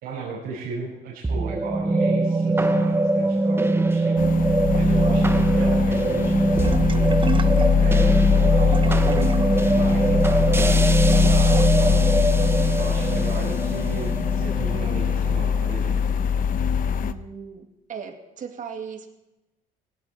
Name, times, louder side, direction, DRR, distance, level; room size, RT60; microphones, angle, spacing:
voice 1, 0.0-7.5 7.7-8.1 8.3-9.3 9.7-10.8 11.1-12.1 12.4-16.0, right 4 dB, 90° right, -6 dB, 5.5 m, -35 dB
sound 1, 1.2-15.7, right 2 dB, 15° right, 1.1 m, -22 dB
sound 2, 4.2-17.1, left 7 dB, 55° left, 0.9 m, -22 dB
voice 2, 5.0-5.4 17.0-19.1, right 7 dB, 50° right, 5 dB, 2.5 m, -37 dB
sound 3, 6.6-12.6, right 6 dB, 30° right, 0.7 m, -35 dB
18.5 x 17.5 x 4.5 m, 0.97 s
cardioid pair, 110°, 17 cm